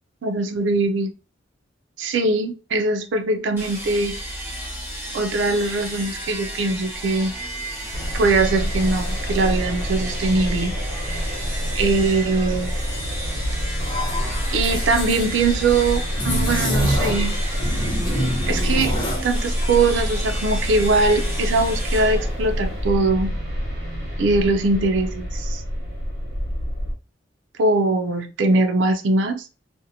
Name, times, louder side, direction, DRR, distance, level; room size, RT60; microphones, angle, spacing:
voice 1, 0.2-1.1 2.0-4.1 5.1-7.3 8.1-10.7 11.8-12.7 14.5-17.4 18.5-18.9 19.2-23.4 24.2-25.6 27.6-29.4, right 3 dB, 85° right, 0.4 m, -21 dB
sound 1, 3.6-23.0, right 1 dB, 10° right, 0.8 m, -33 dB
sound 2, 7.9-26.9, equal, 65° right, 1.0 m, -27 dB
sound 3, 13.8-15.3 16.1-17.3 17.6-19.3, equal, 25° left, 0.6 m, -26 dB
2.7 x 2.1 x 2.6 m
head